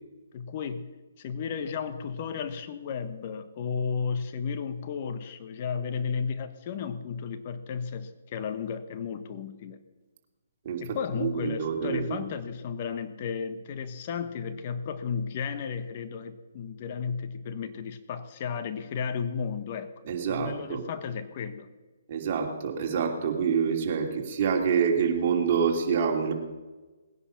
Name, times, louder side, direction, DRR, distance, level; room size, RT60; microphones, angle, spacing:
voice 1, 0.3-9.8 10.8-19.9 20.3-21.7, left 6 dB, 40° left, 10 dB, 1.2 m, -33 dB
voice 2, 10.6-12.2 20.1-20.9 22.1-26.3, right 6 dB, 40° right, 2 dB, 3.0 m, -27 dB
19.5 x 10.5 x 5.8 m, 1.2 s
hypercardioid pair, 145°, 0 cm